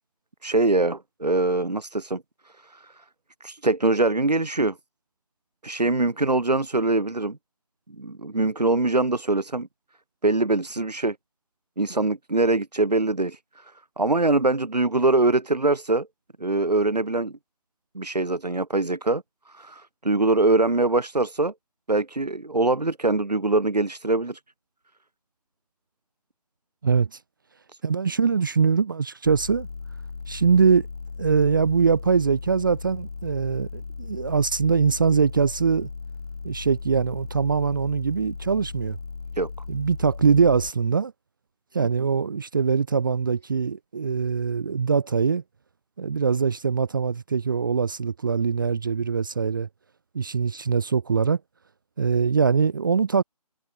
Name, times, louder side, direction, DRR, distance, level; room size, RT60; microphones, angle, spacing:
voice 1, 0.4-2.9 3.4-4.8 5.6-7.4 8.0-9.7 10.2-11.2 11.8-16.1 16.4-17.3 17.9-21.5 21.9-24.4 27.7-27.8 39.4-39.5 41.8-41.9, right 2 dB, 90° right, 0.8 m, -23 dB
voice 2, 27.8-29.7 30.3-30.9 31.2-35.9 36.4-39.0 39.7-41.1 41.7-45.4 46.0-49.7 50.1-51.4 52.0-53.2, right 5 dB, 30° right, 0.6 m, -22 dB
sound 1, 29.2-40.7, left 4 dB, 65° left, 0.8 m, -37 dB
figure-of-eight pair, 150°, 20 cm